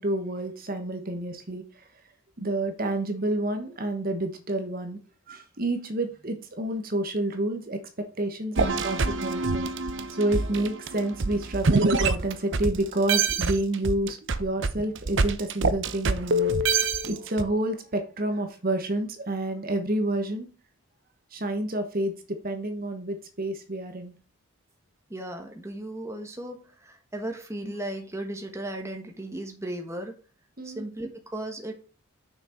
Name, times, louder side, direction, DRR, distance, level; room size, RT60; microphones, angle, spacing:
voice 1, 0.0-1.9 2.4-5.0 5.3-9.7 10.1-16.5 17.1-20.5 21.3-24.1 27.6-27.7 30.6-30.8, right 1 dB, 40° right, 6 dB, 1.2 m, -29 dB
sound 1, 8.6-12.8 13.1-17.4, right 3 dB, 55° right, 0.7 m, -25 dB
voice 2, 25.1-30.1 30.6-31.7, right 1 dB, 15° right, 3 dB, 1.2 m, -36 dB
6.6 x 6.1 x 4.4 m, 0.37 s
head